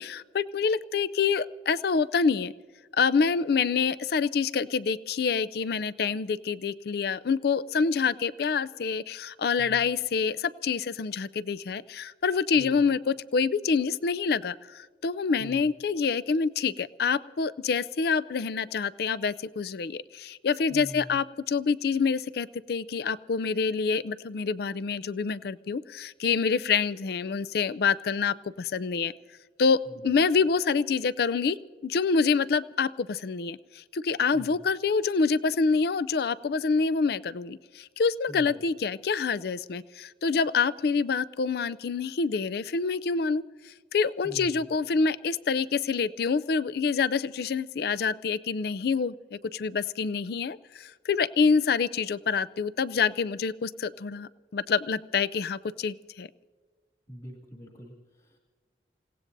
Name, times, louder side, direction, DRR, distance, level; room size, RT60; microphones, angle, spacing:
voice 1, 0.0-2.5 2.9-29.1 29.6-31.6 31.8-56.3, left 5 dB, 60° left, 16 dB, 0.4 m, -27 dB
voice 2, 12.5-12.9 15.4-15.7 20.7-21.2 29.9-30.1 34.3-34.6 38.3-38.6 44.2-44.6 57.1-58.4, equal, 35° left, 0 dB, 2.1 m, -44 dB
29.0 x 17.5 x 2.6 m, 1.5 s
head